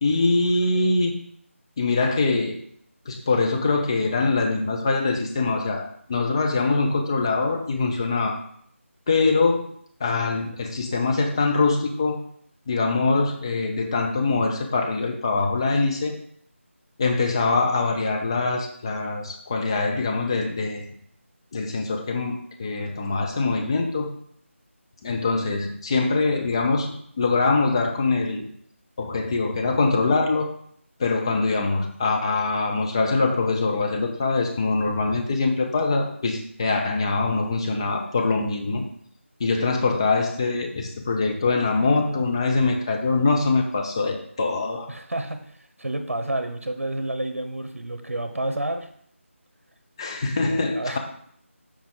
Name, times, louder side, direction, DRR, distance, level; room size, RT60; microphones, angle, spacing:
voice 1, 0.0-1.1 1.8-2.6 3.1-8.4 9.1-9.7 10.0-12.2 12.7-16.2 17.0-20.9 21.5-24.1 25.0-28.5 29.0-30.5 31.0-38.9 39.4-44.9 50.0-51.0, left 3 dB, 20° left, 2 dB, 0.7 m, -23 dB
voice 2, 44.9-45.4 45.8-48.9 50.7-51.0, right 1 dB, 70° right, 7 dB, 1.1 m, -29 dB
7.3 x 5.0 x 3.9 m, 0.63 s
figure-of-eight pair, 160°, 7 cm